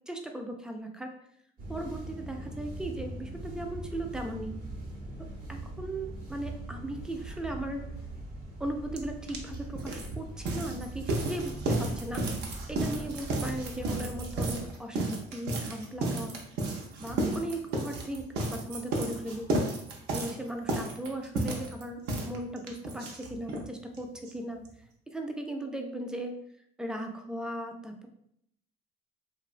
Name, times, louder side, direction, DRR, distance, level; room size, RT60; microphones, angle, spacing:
voice 1, 0.1-1.1 1.7-4.6 5.5-7.9 8.6-12.2 12.7-16.4 17.0-19.5 20.1-24.6 25.1-26.4 26.8-28.1, right 1 dB, 5° right, 4 dB, 0.3 m, -37 dB
sound 1, 1.6-14.7, right 1 dB, 55° right, 0.9 m, -41 dB
sound 2, 9.0-9.1 9.3-23.7 23.9-24.0 24.3-24.4 24.6-24.7, right 2 dB, 80° right, 0.5 m, -33 dB
2.8 x 2.2 x 2.4 m, 0.73 s
cardioid pair, 110°, 17 cm